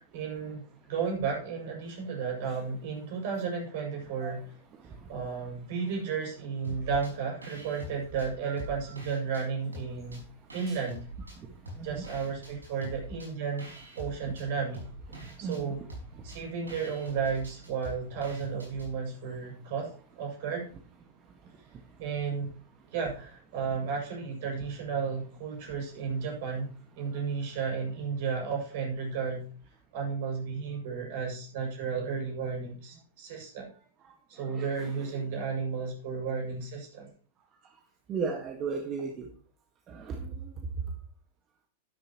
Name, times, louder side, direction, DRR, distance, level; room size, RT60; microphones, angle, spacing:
voice 1, 0.0-4.6 5.1-10.2 10.5-11.1 11.8-14.8 15.4-15.8 16.2-20.7 22.0-22.5 22.9-26.7 27.0-29.5 29.9-33.7 34.3-37.1, right 5 dB, 55° right, 0 dB, 7.0 m, -33 dB
sound 1, 6.6-7.1 7.4-9.4 9.7-11.4 11.7-18.9, right 1 dB, 85° right, 5.2 m, -45 dB
voice 2, 15.4-15.7 34.5-35.2 38.1-39.3 39.9-40.3, right 5 dB, 30° right, 3 dB, 1.7 m, -35 dB
12.0 x 11.5 x 3.1 m, 0.41 s
figure-of-eight pair, 100°, 0 cm